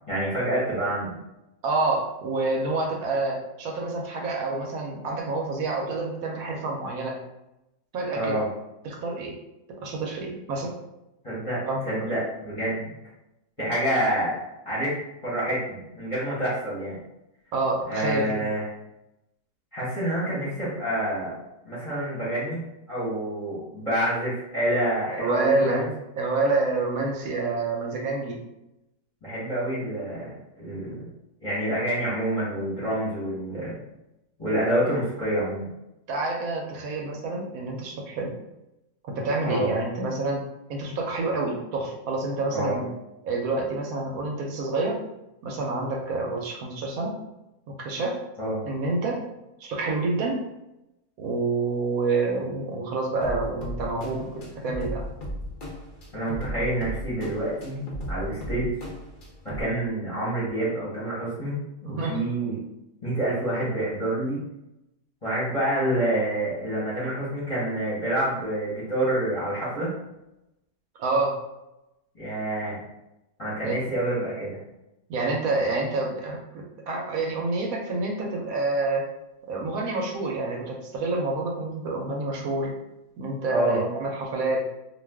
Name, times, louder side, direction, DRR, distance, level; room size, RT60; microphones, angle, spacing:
voice 1, 0.1-1.2 8.1-8.5 11.2-12.9 13.6-14.3 14.6-14.9 15.2-17.0 17.9-18.7 19.7-21.3 21.6-25.9 29.2-31.1 31.4-33.8 34.4-35.7 39.4-39.7 42.5-42.8 48.4-48.6 56.1-57.8 58.1-58.7 59.4-62.6 63.0-64.4 65.2-69.9 72.1-72.8 73.4-74.6 83.5-83.8, right 1 dB, 30° left, -7 dB, 0.7 m, -27 dB
voice 2, 1.6-7.2 7.9-8.4 8.8-9.3 9.8-10.7 11.7-11.8 17.5-18.4 25.1-25.8 26.2-28.4 36.1-38.3 39.0-40.4 40.7-42.9 43.2-45.0 45.4-47.2 47.8-48.2 48.7-49.2 49.6-50.4 51.2-54.3 54.6-55.0 61.8-62.2 71.0-71.4 73.6-73.8 75.1-79.1 79.5-82.7 83.2-84.7, right 3 dB, 70° right, 0 dB, 1.0 m, -28 dB
sound 1, 53.2-59.6, equal, 60° left, 0.5 m, -36 dB
2.4 x 2.3 x 3.4 m, 0.91 s
omnidirectional pair, 1.6 m